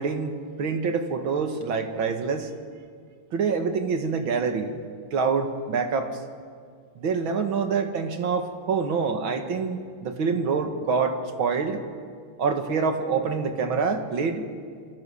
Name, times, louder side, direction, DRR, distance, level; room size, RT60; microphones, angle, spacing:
voice 1, 0.0-2.5 3.3-4.7 5.1-6.1 7.0-11.8 12.4-14.5, right 5 dB, 65° right, 6 dB, 2.5 m, -26 dB
27.0 x 23.5 x 7.1 m, 2.1 s
omnidirectional pair, 2.4 m